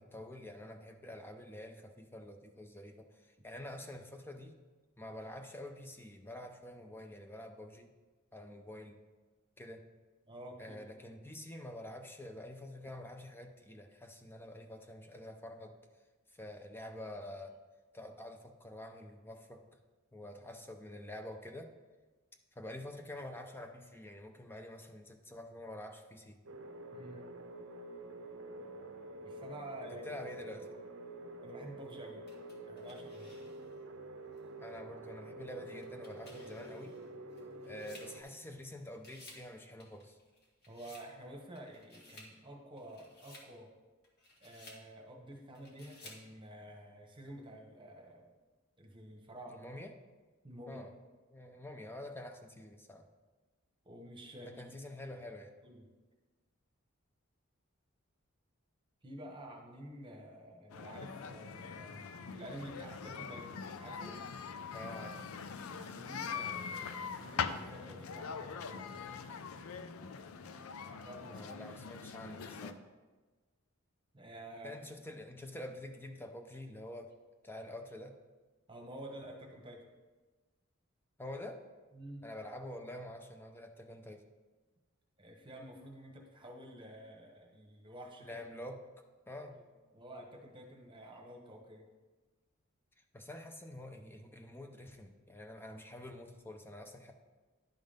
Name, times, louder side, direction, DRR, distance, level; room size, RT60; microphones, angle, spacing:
voice 1, 0.0-4.6 5.0-7.9 8.3-9.0 9.6-9.8 10.6-15.7 16.3-17.5 17.9-19.6 20.1-21.7 22.6-26.4 29.8-30.7 34.6-36.9 37.7-40.2 49.5-49.9 50.7-50.9 51.3-53.0 54.4-55.5 64.7-65.2 71.3-72.8 74.6-77.1 77.4-78.2 81.2-81.6 82.2-84.2 88.2-88.8 89.3-89.6 93.1-97.1, left 1 dB, 10° left, 5 dB, 0.5 m, -47 dB
voice 2, 10.3-10.8 26.9-27.2 29.2-30.2 31.4-32.2 32.6-33.4 40.7-43.7 44.4-48.3 48.8-49.6 50.4-50.8 53.8-54.6 55.6-55.8 59.0-64.2 65.7-69.0 70.8-71.5 72.5-72.9 74.1-74.8 78.7-79.8 81.9-82.2 85.2-88.4 89.5-89.7 89.9-91.8, right 1 dB, 25° right, 1 dB, 1.1 m, -50 dB
sound 1, 26.5-38.2, right 1 dB, 65° right, 0.6 m, -48 dB
sound 2, 32.3-33.8 34.4-34.5 35.7-38.7 38.9-39.5 39.8-41.1 41.5-42.3 42.8-43.5 44.0-44.8 45.5-46.3, left 2 dB, 50° left, 1.4 m, -57 dB
sound 3, 60.7-72.7, left 6 dB, 85° left, 0.5 m, -42 dB
10.5 x 3.7 x 5.1 m, 1.3 s
head